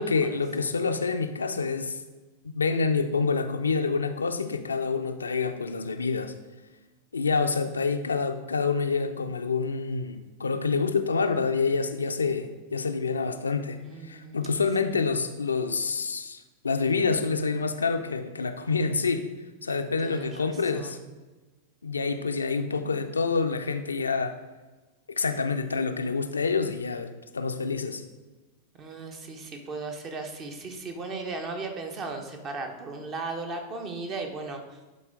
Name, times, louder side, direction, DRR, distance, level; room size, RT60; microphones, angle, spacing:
voice 1, 0.0-2.0 2.4-6.3 7.1-19.3 19.6-21.0 21.8-24.4 25.2-28.0, left 4 dB, 75° left, 7 dB, 0.5 m, -27 dB
voice 2, 13.8-14.5 20.0-21.0 28.7-34.6, right 3 dB, 30° right, 4 dB, 1.1 m, -36 dB
11.5 x 3.9 x 3.7 m, 1.2 s
figure-of-eight pair, 90°, 0 cm